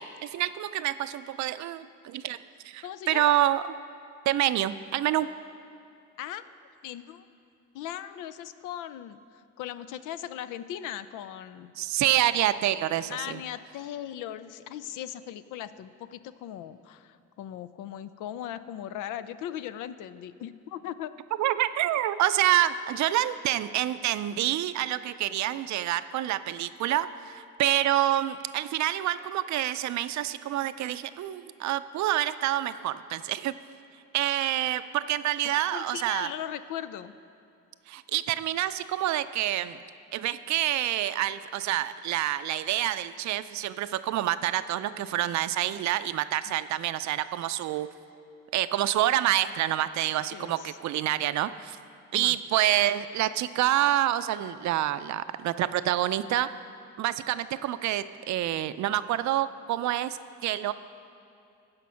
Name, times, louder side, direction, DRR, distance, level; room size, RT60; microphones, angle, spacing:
voice 1, 0.0-2.4 2.6-3.6 4.3-5.3 11.8-13.4 21.4-33.5 34.1-36.3 37.9-39.8 40.1-47.9 48.5-51.8 52.1-56.5 57.0-60.7, right 13 dB, 70° right, 13 dB, 0.5 m, -27 dB
voice 2, 2.8-3.3 6.2-6.4 6.8-7.2 7.7-11.7 13.1-21.1 35.4-37.1 50.3-50.8 52.1-52.4, left 11 dB, 85° left, 14 dB, 0.5 m, -38 dB
15.5 x 5.2 x 5.7 m, 2.6 s
cardioid pair, 90°, 30 cm